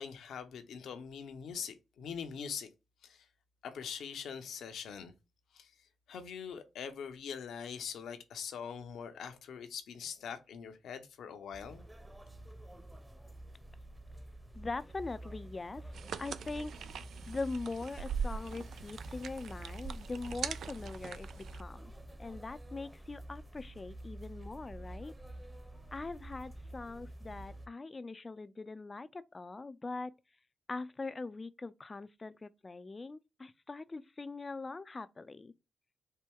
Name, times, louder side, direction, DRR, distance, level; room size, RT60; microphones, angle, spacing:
voice 1, 0.0-2.7 3.0-3.3 3.6-5.1 5.5-5.7 6.1-11.8, left 7 dB, 75° left, 0.7 m, -43 dB
sound 1, 11.5-27.7, right 1 dB, 20° right, 1.0 m, -48 dB
voice 2, 14.5-21.9 22.2-25.1 25.9-30.1 30.7-35.5, left 3 dB, 35° left, 0.4 m, -42 dB
sound 2, 15.9-21.6, right 6 dB, 75° right, 0.3 m, -42 dB
4.4 x 2.2 x 3.6 m
hypercardioid pair, 40°, 0 cm